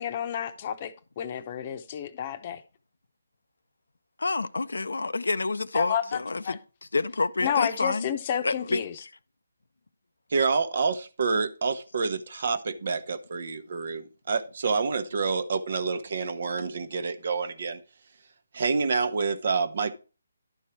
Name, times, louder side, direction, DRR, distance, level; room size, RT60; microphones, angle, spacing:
voice 1, 0.0-2.6 5.7-6.6 7.4-8.9, left 9 dB, 35° left, 0.8 m, -30 dB
voice 2, 4.2-6.6 6.9-8.1 8.4-8.8, left 3 dB, 80° left, 0.5 m, -28 dB
voice 3, 10.3-17.8 18.5-19.9, right 4 dB, 55° right, 1.0 m, -28 dB
11.5 x 4.6 x 4.4 m
figure-of-eight pair, 155°, 0 cm